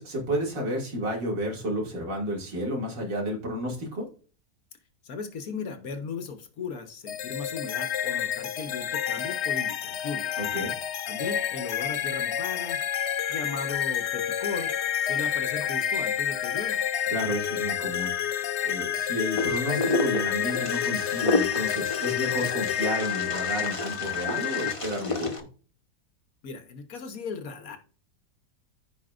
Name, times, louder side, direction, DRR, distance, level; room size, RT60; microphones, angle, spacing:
voice 1, 0.0-4.1 10.4-10.7 17.1-25.5, equal, 80° right, 0 dB, 3.1 m, -31 dB
voice 2, 5.0-10.3 11.0-12.8 13.3-14.7 15.0-16.8 26.4-27.8, left 5 dB, 60° left, 7 dB, 1.3 m, -37 dB
sound 1, 7.1-24.7, left 9 dB, 80° left, 0.6 m, -29 dB
Wind, 19.3-25.4, left 2 dB, 25° left, 0.7 m, -31 dB
15.0 x 5.2 x 2.5 m, 0.39 s
omnidirectional pair, 1.9 m